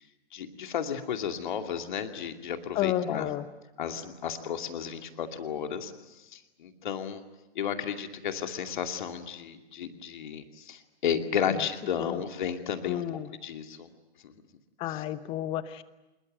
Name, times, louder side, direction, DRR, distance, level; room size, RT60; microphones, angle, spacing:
voice 1, 0.3-3.3 3.8-7.2 7.5-13.0 13.4-13.9 14.2-14.3 14.9-15.0, left 8 dB, 45° left, 6 dB, 2.6 m, -33 dB
voice 2, 2.7-3.4 12.0-12.2 12.8-13.3 14.8-15.8, left 12 dB, 15° left, 16 dB, 0.9 m, -31 dB
26.0 x 22.0 x 9.2 m, 1.0 s
figure-of-eight pair, 120°, 33 cm